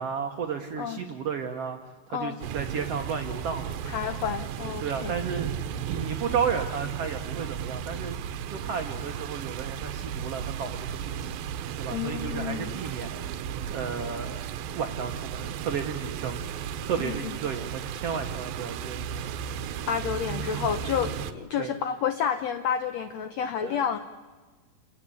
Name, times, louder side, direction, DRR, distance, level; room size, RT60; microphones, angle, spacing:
voice 1, 0.0-3.7 4.8-8.2 8.5-11.4 11.8-13.2 13.7-14.4 14.7-16.4 16.8-19.3 21.6-21.7 23.6-23.8, right 6 dB, 65° right, 4 dB, 1.6 m, -33 dB
sound 1, 2.4-21.3, right 8 dB, 80° right, 2.6 m, -35 dB
voice 2, 3.9-5.1 5.9-6.0 11.9-12.7 17.0-17.3 19.9-24.0, left 8 dB, 80° left, 9 dB, 1.5 m, -30 dB
28.5 x 17.0 x 8.5 m, 1.3 s
omnidirectional pair, 4.2 m